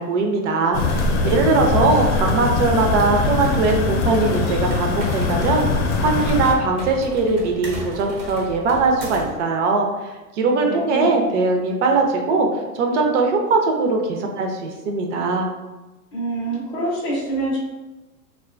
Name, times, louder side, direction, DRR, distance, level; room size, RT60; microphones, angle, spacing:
voice 1, 0.0-15.5, right 3 dB, 55° right, 2 dB, 0.5 m, -20 dB
sound 1, 0.7-6.5, left 3 dB, 85° left, 0.6 m, -22 dB
sound 2, 3.1-9.4, right 1 dB, 90° right, 1.0 m, -35 dB
voice 2, 16.1-17.6, right 1 dB, 10° left, -8 dB, 0.4 m, -25 dB
2.4 x 2.2 x 2.4 m, 1.1 s
supercardioid pair, 145°, 44 cm